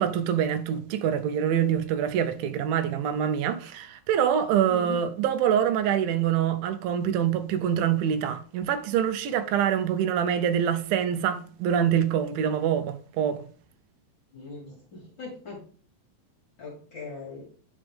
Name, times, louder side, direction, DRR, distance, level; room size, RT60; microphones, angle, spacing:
voice 1, 0.0-13.4, right 9 dB, 85° right, 2.5 m, -25 dB
voice 2, 4.7-5.0 14.3-15.6 16.6-17.5, left 4 dB, 45° left, 1.6 m, -40 dB
9.0 x 5.1 x 3.5 m
omnidirectional pair, 4.1 m